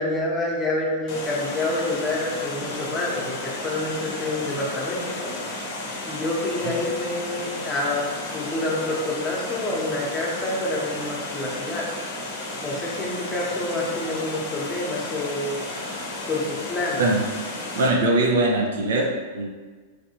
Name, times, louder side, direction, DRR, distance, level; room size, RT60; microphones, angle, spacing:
voice 1, 0.0-5.3 6.1-11.9 12.6-15.6 16.3-17.0, left 2 dB, 20° left, -4 dB, 0.9 m, -27 dB
Water, 1.1-17.9, left 2 dB, 50° left, 0.7 m, -33 dB
voice 2, 17.8-19.5, right 2 dB, 70° right, 0 dB, 0.5 m, -21 dB
3.2 x 2.6 x 2.8 m, 1.4 s
hypercardioid pair, 105°, 0 cm